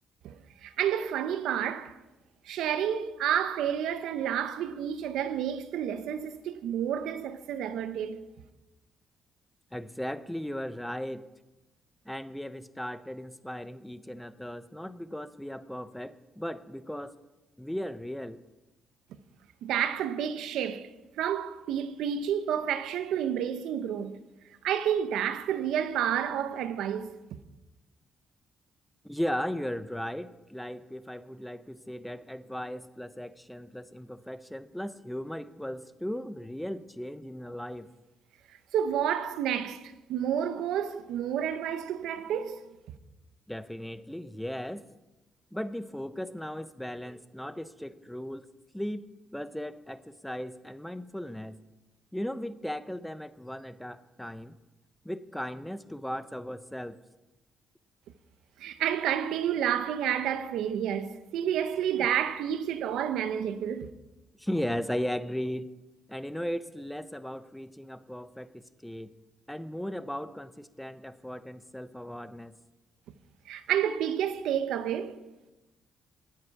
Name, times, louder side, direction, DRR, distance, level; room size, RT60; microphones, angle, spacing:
voice 1, 0.6-1.9 2.5-8.2 19.6-20.9 21.2-24.2 24.6-27.2 38.7-39.8 40.1-42.6 58.6-63.9 73.5-75.2, right 9 dB, 85° right, 0.8 m, -30 dB
voice 2, 9.7-11.3 12.1-17.1 17.6-18.4 29.0-37.9 43.5-44.8 45.5-48.4 48.7-49.0 49.3-51.6 52.1-54.6 55.0-57.0 62.0-62.1 64.4-65.7 66.1-69.1 69.5-72.6, equal, 5° left, 0.6 m, -37 dB
18.0 x 7.6 x 4.7 m
cardioid pair, 90°, 0 cm